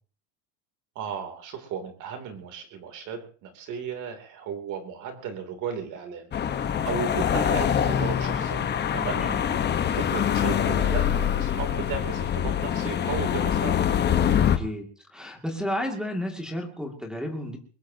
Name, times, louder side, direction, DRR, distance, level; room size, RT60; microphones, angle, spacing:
voice 1, 0.9-6.3 6.8-13.8, right 7 dB, 50° right, 5 dB, 3.0 m, -35 dB
sound 1, 6.3-14.6, left 9 dB, 25° left, 1.1 m, -24 dB
voice 2, 14.4-14.9 15.1-17.6, left 1 dB, ahead, 0 dB, 2.3 m, -32 dB
22.0 x 20.0 x 2.9 m, 0.40 s
cardioid pair, 145°, 39 cm